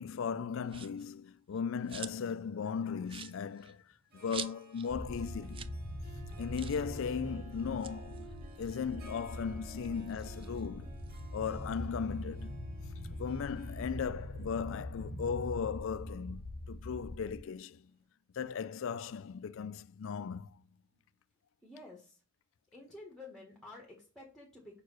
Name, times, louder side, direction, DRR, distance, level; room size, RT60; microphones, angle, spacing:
voice 1, 0.0-3.8 4.1-5.8 6.4-8.3 8.6-11.0 11.3-12.6 13.2-17.9 18.3-20.6, left 6 dB, 65° left, 0.4 m, -37 dB
sound 1, 0.7-1.1 1.5-2.4 2.7-2.8 3.0-4.9 5.2-5.3 5.5-5.8 6.1-6.2 6.5-6.9 7.6-9.4 9.8-11.2, right 7 dB, 25° right, 0.4 m, -47 dB
Harp, 4.1-17.7, right 3 dB, 45° right, 2.0 m, -56 dB
sound 2, 4.9-17.4, left 1 dB, 40° left, 1.0 m, -43 dB
voice 2, 21.6-22.2 22.7-24.8, left 2 dB, ahead, 1.4 m, -51 dB
5.4 x 4.7 x 6.3 m
head